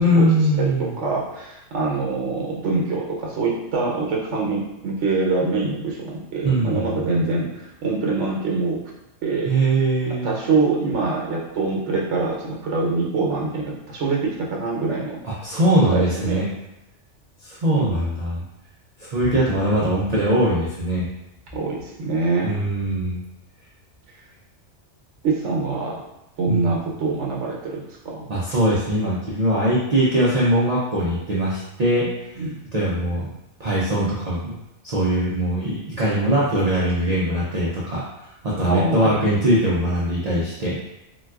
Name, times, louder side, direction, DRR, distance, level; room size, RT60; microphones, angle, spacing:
voice 1, 0.0-0.9 6.4-7.2 9.5-10.3 15.2-16.4 17.4-18.4 19.0-21.1 22.4-23.2 26.5-26.7 28.3-32.1 32.7-33.3 33.6-34.5 34.8-40.8, right 1 dB, 50° right, -7 dB, 0.5 m, -21 dB
voice 2, 0.6-8.8 9.2-9.5 10.2-15.2 15.8-16.5 17.7-18.0 21.5-22.5 25.2-26.0 26.4-28.3 32.4-32.6 38.6-39.2, right 3 dB, 75° right, -2 dB, 1.0 m, -24 dB
3.8 x 2.3 x 2.3 m, 0.91 s
omnidirectional pair, 1.3 m